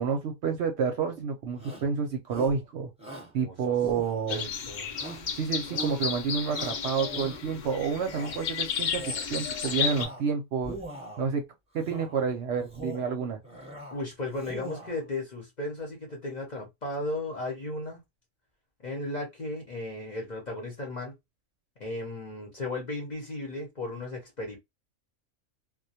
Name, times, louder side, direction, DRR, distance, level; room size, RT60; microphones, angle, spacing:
voice 1, 0.0-2.9 3.3-4.5 5.4-10.8 11.2-11.4 11.7-13.4, right 6 dB, 65° right, 0.8 m, -29 dB
Shout, 1.6-1.9 2.3-2.6 3.0-3.3 3.8-4.5 4.9-5.3 5.6-6.0 6.5-7.6 8.0-8.4 8.8-9.3 9.6-10.3 10.6-11.3 11.8-12.2 12.6-13.1 13.4-14.0 14.3-15.0, right 1 dB, 5° right, 0.9 m, -42 dB
voice 2, 3.3-3.7 4.3-4.9 13.9-18.0 18.8-21.1 21.8-24.6, left 2 dB, 40° left, 0.7 m, -35 dB
sound 1, 4.3-10.1, left 7 dB, 85° left, 0.4 m, -33 dB
2.2 x 2.2 x 2.7 m
omnidirectional pair, 1.4 m